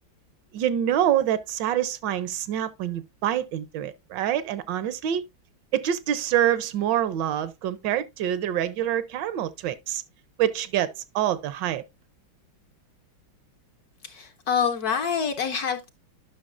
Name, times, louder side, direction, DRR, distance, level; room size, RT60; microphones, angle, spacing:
voice 1, 0.5-5.2 5.7-10.0 10.4-11.8, right 11 dB, 75° right, 1.2 m, -26 dB
voice 2, 14.0-15.9, left 7 dB, 65° left, 1.0 m, -26 dB
10.5 x 5.8 x 2.4 m
omnidirectional pair, 2.1 m